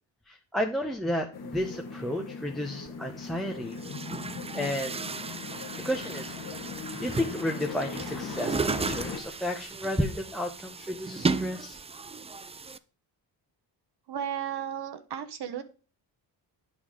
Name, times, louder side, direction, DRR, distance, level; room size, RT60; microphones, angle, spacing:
voice 1, 0.3-3.8 4.5-5.0 5.8-6.3 7.0-11.8, left 1 dB, ahead, 0 dB, 0.8 m, -32 dB
sound 1, 1.3-9.2, left 5 dB, 60° left, 1.4 m, -39 dB
Chatter / Gurgling / Tap, 2.9-3.0 3.7-12.8, right 4 dB, 15° right, 0.3 m, -35 dB
voice 2, 14.1-15.6, right 9 dB, 65° right, 8 dB, 1.1 m, -34 dB
8.7 x 5.5 x 5.0 m, 0.36 s
cardioid pair, 95°, 43 cm